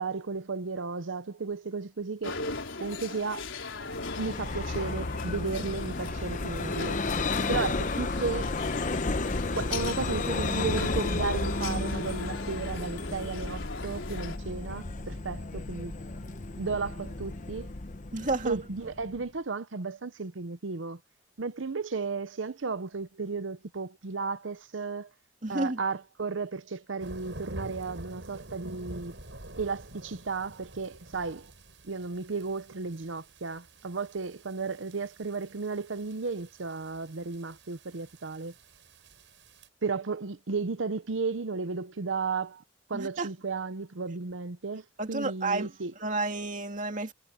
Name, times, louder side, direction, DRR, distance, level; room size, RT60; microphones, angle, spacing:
voice 1, 0.0-2.4 2.8-3.5 4.2-7.0 7.5-8.5 9.6-15.9 16.6-17.7 18.4-21.0 21.4-25.1 25.5-29.1 29.5-31.5 31.8-38.5 39.8-42.6 42.9-45.9, right 4 dB, 85° right, 0.8 m, -34 dB
sound 1, 2.2-14.4, left 3 dB, 90° left, 4.0 m, -39 dB
Vehicle, 3.8-19.2, left 3 dB, 40° left, 0.8 m, -33 dB
voice 2, 18.1-18.6 25.4-25.8 42.9-43.3 45.0-45.7 46.0-47.1, right 2 dB, 40° right, 2.4 m, -31 dB
sound 2, 27.0-39.7, right 1 dB, 70° right, 6.3 m, -48 dB
head